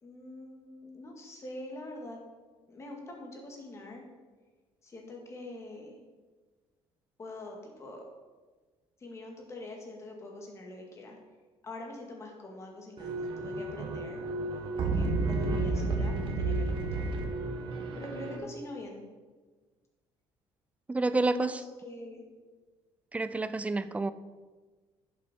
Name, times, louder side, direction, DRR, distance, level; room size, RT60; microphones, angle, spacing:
voice 1, 0.0-2.2 2.7-4.0 4.8-6.0 7.2-8.0 9.0-11.2 11.6-14.2 14.8-17.1 17.9-19.1 21.2-22.2, left 1 dB, 30° left, 1 dB, 2.1 m, -44 dB
sound 1, 13.0-18.4, right 3 dB, 55° right, 1.4 m, -31 dB
voice 2, 20.9-21.6 23.1-24.1, right 3 dB, 15° right, 14 dB, 0.4 m, -29 dB
11.0 x 7.5 x 4.4 m, 1.3 s
cardioid pair, 140°, 10 cm